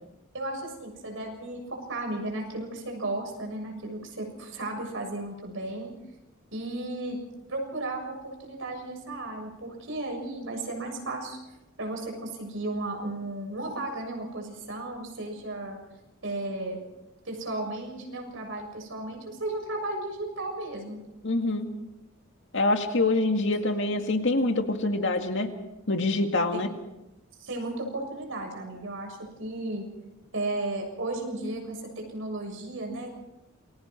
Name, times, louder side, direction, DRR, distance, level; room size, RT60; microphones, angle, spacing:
voice 1, 0.3-5.9 6.5-7.2 7.5-11.4 11.8-15.8 16.2-16.8 17.2-21.0 26.5-26.6 27.4-29.9 30.3-33.2, right 2 dB, 65° right, 2 dB, 7.1 m, -34 dB
voice 2, 21.2-21.7 22.5-25.5 25.9-26.7, left 2 dB, 65° left, 5 dB, 2.1 m, -25 dB
28.0 x 22.5 x 4.5 m, 0.92 s
head